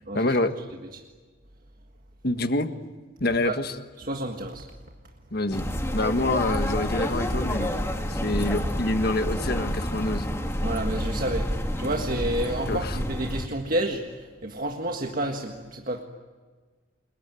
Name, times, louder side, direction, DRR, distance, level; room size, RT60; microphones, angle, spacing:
voice 1, 0.1-0.5 2.2-2.7 3.2-3.7 5.3-5.6 5.9-7.7 8.1-10.3 12.7-13.0, left 2 dB, 55° left, 8 dB, 1.6 m, -26 dB
voice 2, 4.0-4.6 10.6-11.5 11.8-16.0, right 1 dB, 50° right, 2 dB, 1.7 m, -30 dB
sound 1, 5.5-13.5, equal, 15° left, 1.9 m, -29 dB
29.5 x 21.5 x 9.2 m, 1.4 s
head